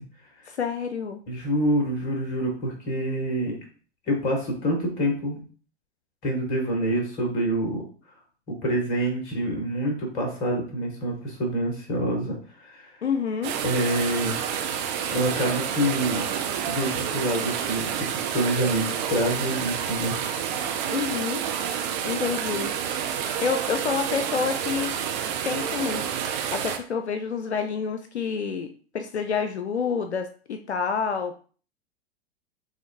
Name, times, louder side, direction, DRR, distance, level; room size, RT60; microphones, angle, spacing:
voice 1, 0.5-1.2 13.0-13.6 20.9-21.5 22.0-22.7 23.1-25.0 25.4-28.7 28.9-31.4, left 6 dB, 85° left, 7 dB, 0.5 m, -28 dB
voice 2, 1.3-3.6 4.1-5.4 6.2-7.8 8.5-12.9 13.6-14.4 15.1-16.2 16.7-20.1, right 1 dB, 30° left, 1 dB, 1.7 m, -26 dB
sound 1, 13.4-26.8, right 8 dB, 40° right, 0.7 m, -29 dB
6.3 x 2.6 x 2.5 m, 0.42 s
figure-of-eight pair, 95°, 32 cm